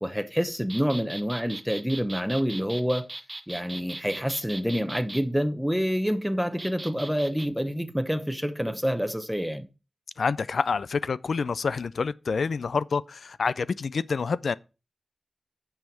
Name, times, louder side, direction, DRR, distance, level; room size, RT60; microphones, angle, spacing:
voice 1, 0.0-3.1 3.5-9.7, equal, ahead, 0.9 m, -27 dB
sound 1, 0.7-5.2 6.6-7.5, right 2 dB, 30° right, 0.9 m, -39 dB
voice 2, 10.2-14.6, left 5 dB, 80° left, 0.3 m, -27 dB
8.9 x 5.6 x 4.5 m
wide cardioid pair, 65°, 0 cm